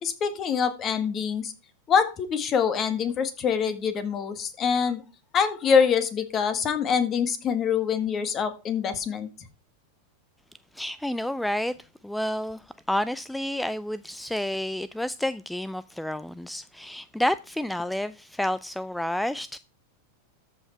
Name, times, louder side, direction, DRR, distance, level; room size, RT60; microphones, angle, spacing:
voice 1, 0.0-1.5 1.9-5.0 5.3-9.3, left 6 dB, 35° left, 1.8 m, -25 dB
voice 2, 10.7-19.6, left 1 dB, 5° left, 0.4 m, -30 dB
13.5 x 5.5 x 4.6 m
hypercardioid pair, 95°, 0 cm